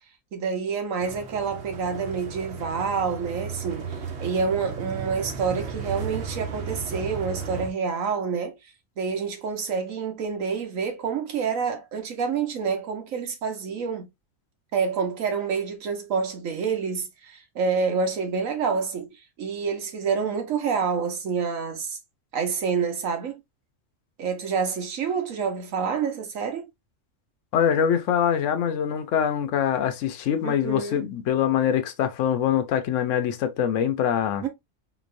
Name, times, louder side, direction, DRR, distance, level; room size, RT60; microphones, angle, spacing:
voice 1, 0.3-8.5 9.0-14.1 14.7-22.0 22.3-23.4 24.2-26.6 30.4-31.0 34.4-34.5, right 5 dB, 90° right, 1.3 m, -28 dB
sound 1, 1.0-7.7, right 5 dB, 60° right, 1.1 m, -35 dB
voice 2, 27.5-34.4, left 9 dB, 70° left, 1.0 m, -24 dB
4.0 x 3.0 x 2.5 m
omnidirectional pair, 1.4 m